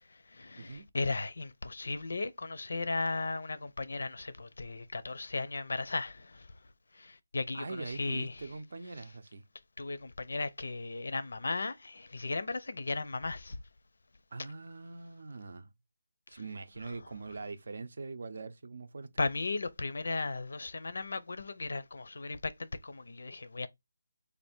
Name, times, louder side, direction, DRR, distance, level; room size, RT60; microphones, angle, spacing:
voice 1, 0.4-6.4 7.0-8.3 9.8-13.6 19.2-23.7, left 3 dB, 70° left, 0.5 m, -36 dB
voice 2, 7.5-9.4 14.3-15.7 16.3-19.3, right 3 dB, 60° right, 0.6 m, -43 dB
3.3 x 2.5 x 4.3 m
figure-of-eight pair, 165°, 0 cm